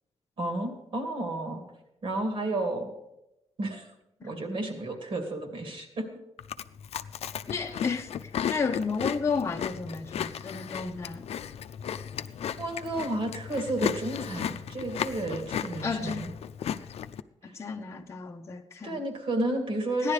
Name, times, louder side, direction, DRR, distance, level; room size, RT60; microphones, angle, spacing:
voice 1, 0.4-1.6 2.0-2.9 3.6-3.9 4.2-6.1 12.6-16.3 17.9-18.0 18.8-20.1, right 2 dB, 55° right, 2.5 m, -32 dB
Chewing mastication, 6.4-17.2, left 9 dB, 80° left, 0.5 m, -35 dB
voice 2, 7.5-11.3 15.8-16.3 17.4-19.0 20.0-20.1, left 5 dB, 25° left, 0.8 m, -32 dB
15.5 x 10.5 x 4.9 m
wide cardioid pair, 155°, 10 cm